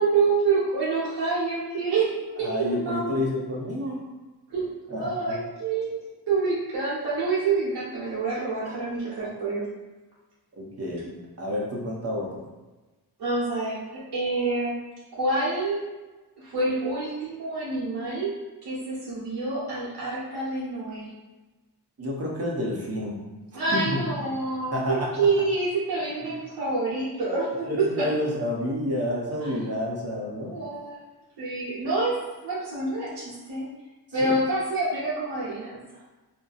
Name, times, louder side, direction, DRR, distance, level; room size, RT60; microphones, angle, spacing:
voice 1, 0.0-3.2 4.5-6.0 6.3-9.7 13.2-14.8 15.1-15.8 16.4-18.3 18.6-21.1 23.5-28.1 29.4-29.5 30.5-31.0 31.4-32.1 32.4-33.7 34.1-35.8, right 3 dB, 65° right, -8 dB, 0.9 m, -27 dB
voice 2, 2.4-4.0 4.9-5.4 8.6-8.8 10.5-11.1 11.4-12.4 22.0-23.2 23.7-24.3 24.7-25.1 27.7-30.5 34.2-34.4, left 1 dB, 35° right, -3 dB, 0.7 m, -29 dB
2.5 x 2.2 x 3.9 m, 1.1 s
wide cardioid pair, 140°, 41 cm